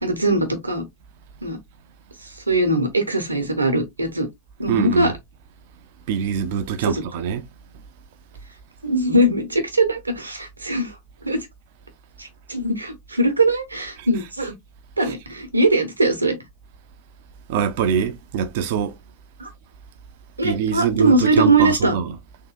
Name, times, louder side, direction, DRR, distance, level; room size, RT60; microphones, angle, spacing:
voice 1, 0.0-0.8 1.4-1.6 2.2-4.3 4.6-5.1 6.8-7.0 8.8-11.0 11.2-11.5 12.2-14.5 15.0-16.4 19.4-19.5 20.4-21.9, right 1 dB, 80° right, 1.0 m, -21 dB
voice 2, 4.7-5.1 6.1-7.5 14.0-14.1 15.0-15.1 17.5-19.0 20.4-22.1, right 8 dB, 50° right, 0.6 m, -23 dB
3.7 x 2.7 x 2.5 m
figure-of-eight pair, 90°, 0 cm